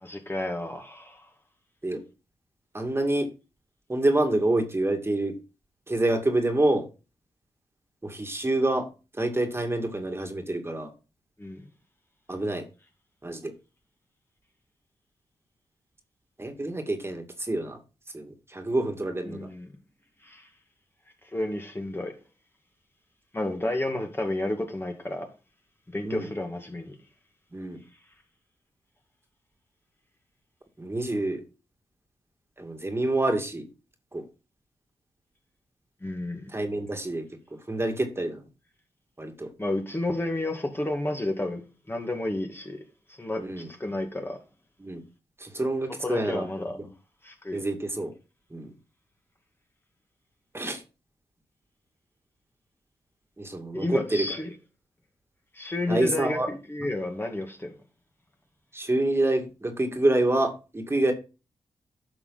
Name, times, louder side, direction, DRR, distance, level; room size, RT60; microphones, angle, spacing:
voice 1, 0.0-1.2 11.4-11.6 19.3-19.7 20.2-20.5 21.3-22.2 23.3-25.3 25.9-27.0 36.0-36.5 39.6-44.4 46.0-46.8 47.2-47.6 53.7-54.5 55.5-57.7, left 1 dB, 20° left, 2.2 m, -31 dB
voice 2, 2.7-3.3 3.9-5.3 5.9-6.9 8.0-8.9 9.2-10.9 12.3-12.7 13.2-13.5 16.4-17.8 18.1-19.5 26.0-26.3 27.5-27.8 30.8-31.4 32.6-33.6 34.1-34.2 36.5-37.2 37.5-38.4 39.2-39.5 43.4-43.7 44.8-45.0 45.4-46.5 47.5-48.1 48.5-48.7 50.5-50.8 53.4-54.3 55.9-56.5 58.7-61.1, right 2 dB, 25° right, 2.3 m, -27 dB
11.0 x 6.0 x 4.1 m
cardioid pair, 50°, 11 cm